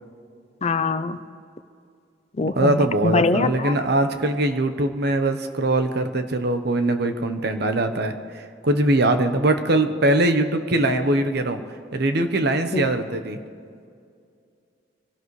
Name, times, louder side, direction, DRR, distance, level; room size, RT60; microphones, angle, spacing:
voice 1, 0.6-1.2 2.4-3.8 12.7-12.9, left 4 dB, 35° left, 12 dB, 0.5 m, -23 dB
voice 2, 2.5-11.6 11.9-13.4, right 2 dB, 60° right, 8 dB, 1.0 m, -22 dB
25.0 x 17.5 x 3.2 m, 2.4 s
head